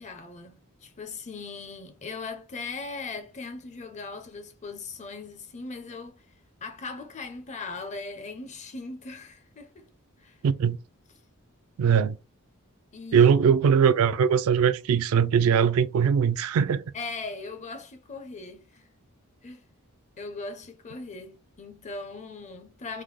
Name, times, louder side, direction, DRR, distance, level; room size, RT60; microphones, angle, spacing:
voice 1, 0.0-6.3 6.6-9.9 10.2-10.4 12.9-13.3 13.7-13.8 16.9-18.9 19.4-19.6 20.2-23.0, left 3 dB, 30° left, 0.5 m, -39 dB
voice 2, 10.4-10.8 11.8-12.2 13.1-16.8, right 7 dB, 70° right, 0.3 m, -21 dB
3.5 x 2.1 x 3.1 m
head